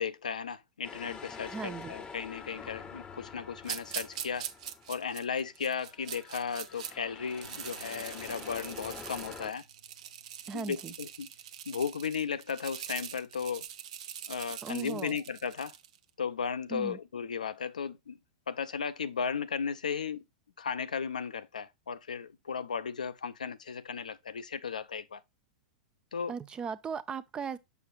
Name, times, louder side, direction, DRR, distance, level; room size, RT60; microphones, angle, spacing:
voice 1, 0.0-4.5 4.9-9.6 10.5-11.3 11.7-13.7 14.3-15.7 16.2-18.2 18.5-20.2 20.6-25.2 26.1-26.3, left 6 dB, 75° left, 0.6 m, -35 dB
sound 1, 0.8-5.4 5.8-9.5, left 5 dB, 20° left, 0.7 m, -47 dB
voice 2, 1.5-1.9 10.5-10.9 14.6-15.2 16.7-17.0 26.3-27.6, right 6 dB, 20° right, 0.6 m, -37 dB
sound 2, 3.6-6.9 7.3-16.0, right 9 dB, 60° right, 0.8 m, -43 dB
Bass guitar, 7.4-13.7, right 4 dB, 80° right, 1.1 m, -65 dB
7.1 x 5.7 x 2.4 m
figure-of-eight pair, 100°, 4 cm